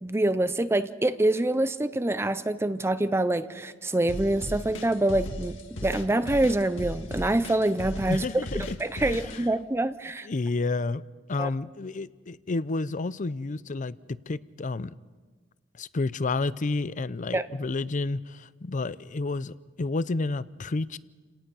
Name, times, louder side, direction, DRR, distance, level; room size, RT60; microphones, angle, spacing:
voice 1, 0.0-5.6 5.8-8.2 8.8-10.3 11.4-11.5 17.3-17.5, right 1 dB, 15° right, 0.5 m, -25 dB
sound 1, 4.1-9.4, left 1 dB, 70° left, 2.1 m, -36 dB
voice 2, 8.1-9.2 10.2-11.0 11.3-15.0 15.8-21.0, left 3 dB, 40° left, 0.5 m, -30 dB
29.5 x 18.0 x 5.5 m
head